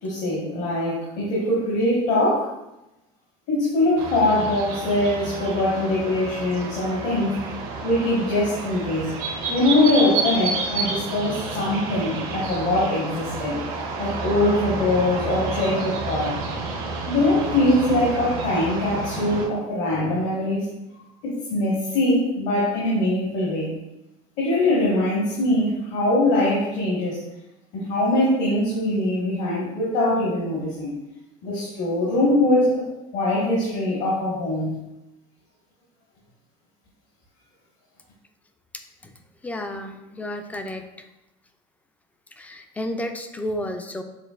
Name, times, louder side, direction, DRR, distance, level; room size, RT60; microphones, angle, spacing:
voice 1, 0.0-2.5 3.5-7.5 7.8-9.1 9.5-13.6 14.0-16.3 17.1-20.6 21.2-23.7 24.4-27.2 27.7-30.9 31.4-32.8 33.1-34.8, left 1 dB, 70° left, -7 dB, 1.5 m, -22 dB
sound 1, 4.0-19.5, right 4 dB, 90° right, 1.1 m, -30 dB
voice 2, 39.4-41.1 42.4-44.0, left 1 dB, 10° left, 6 dB, 0.3 m, -32 dB
6.5 x 2.5 x 2.4 m, 0.92 s
cardioid pair, 135°, 18 cm